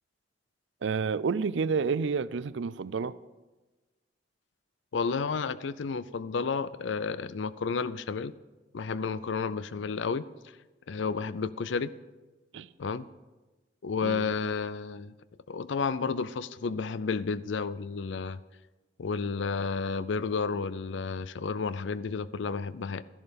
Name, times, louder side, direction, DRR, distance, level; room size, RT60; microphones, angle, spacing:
voice 1, 0.8-3.2 12.5-12.7 14.0-14.3, right 5 dB, 75° right, 0.4 m, -29 dB
voice 2, 4.9-8.3 8.7-10.2 10.9-11.9 12.8-13.1 13.8-15.1 15.5-18.4 19.0-23.0, left 5 dB, 70° left, 0.5 m, -31 dB
13.0 x 11.0 x 5.2 m
head